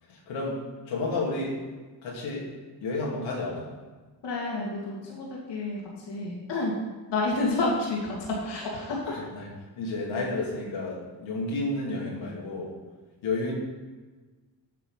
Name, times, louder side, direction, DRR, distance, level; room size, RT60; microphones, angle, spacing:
voice 1, 0.1-1.6 2.0-2.5 2.8-3.7 9.1-9.5 9.8-12.7 13.2-13.5, left 2 dB, 85° left, -4 dB, 2.5 m, -31 dB
voice 2, 4.2-5.8 6.1-6.8 7.1-9.0, left 2 dB, 65° left, -3 dB, 2.2 m, -29 dB
8.4 x 5.7 x 5.7 m, 1.3 s
cardioid pair, 75°, 45 cm